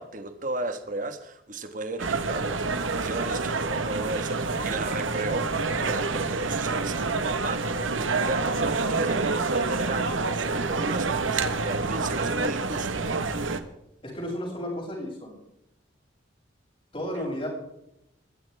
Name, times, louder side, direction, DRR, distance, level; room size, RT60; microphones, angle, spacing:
voice 1, 0.0-13.0, right 2 dB, 40° right, 8 dB, 1.5 m, -35 dB
sound 1, 2.0-13.6, right 3 dB, 90° right, 1.3 m, -27 dB
voice 2, 14.0-15.4 16.9-17.5, equal, 30° left, -2 dB, 7.1 m, -33 dB
21.0 x 15.5 x 3.5 m, 0.84 s
head